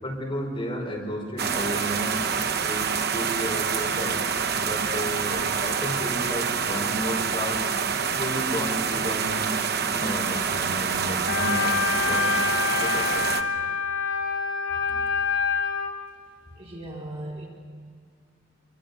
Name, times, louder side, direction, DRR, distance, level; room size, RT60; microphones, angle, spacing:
voice 1, 0.0-2.2 2.6-4.2 4.6-7.6 8.1-9.6 9.9-12.3 12.8-13.3, equal, 30° left, -2 dB, 5.6 m, -32 dB
sound 1, 1.4-13.4, right 6 dB, 55° right, 1.1 m, -27 dB
Wind instrument woodwind instrument, 11.3-15.9, left 5 dB, 85° left, 4.2 m, -26 dB
voice 2, 16.6-17.5, right 1 dB, 30° right, -3 dB, 3.7 m, -37 dB
26.5 x 24.5 x 7.0 m, 2.1 s
head